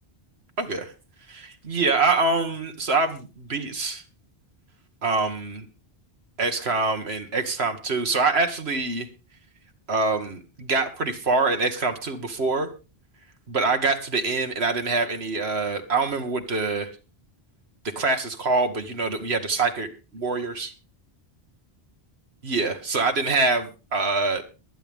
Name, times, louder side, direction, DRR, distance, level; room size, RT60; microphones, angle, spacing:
voice 1, 0.6-0.9 1.3-4.0 5.0-5.7 6.4-9.1 9.9-12.7 13.5-16.9 18.0-20.7 22.4-24.4, right 3 dB, 85° right, 6 dB, 1.8 m, -25 dB
22.5 x 9.1 x 3.6 m, 0.31 s
omnidirectional pair, 1.0 m